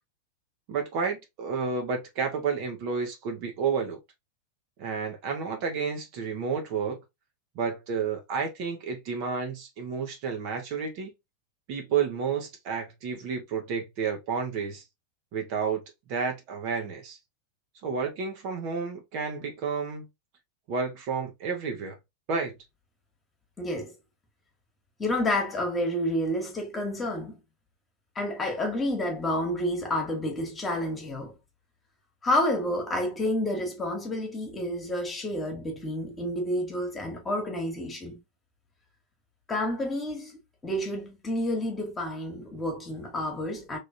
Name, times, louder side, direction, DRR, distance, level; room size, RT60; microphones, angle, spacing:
voice 1, 0.7-4.0 4.8-7.0 7.5-11.1 11.7-14.8 15.3-15.8 16.1-17.2 17.8-20.1 20.7-22.0 22.3-22.5, right 5 dB, 45° right, 1.1 m, -31 dB
voice 2, 23.6-23.9 25.0-27.4 28.2-31.3 32.2-38.2 39.5-40.3 40.6-43.8, left 1 dB, 15° left, 1.6 m, -29 dB
3.8 x 3.3 x 2.7 m
figure-of-eight pair, 90°, 0 cm